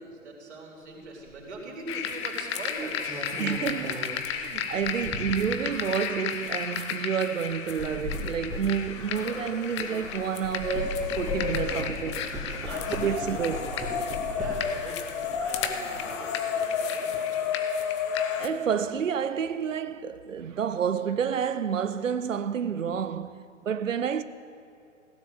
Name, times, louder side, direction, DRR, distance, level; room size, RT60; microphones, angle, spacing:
voice 1, 0.0-3.6 12.6-14.0 14.3-17.5, right 2 dB, 60° right, 3.9 m, -42 dB
sound 1, 1.3-1.5 2.7-5.6 6.3-6.5 7.5-10.1 10.4-14.8 15.2-16.0, equal, 10° right, 2.2 m, -37 dB
sound 2, 1.9-18.5, left 7 dB, 25° left, 0.7 m, -32 dB
voice 2, 3.4-12.3 12.9-13.7 18.4-24.2, right 7 dB, 75° right, 0.6 m, -29 dB
16.0 x 10.0 x 7.6 m
figure-of-eight pair, 120°, 39 cm